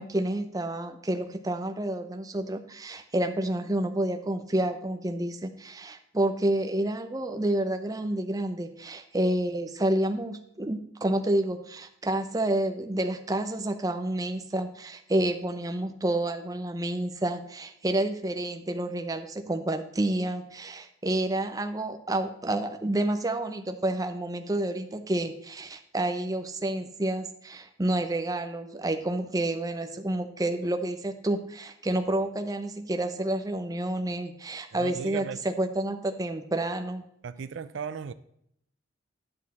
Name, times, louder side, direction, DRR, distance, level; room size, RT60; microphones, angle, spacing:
voice 1, 0.0-37.0, right 1 dB, 20° right, 0.6 m, -29 dB
voice 2, 34.7-35.4 37.2-38.1, right 6 dB, 70° right, 0.4 m, -36 dB
10.5 x 6.4 x 4.2 m
head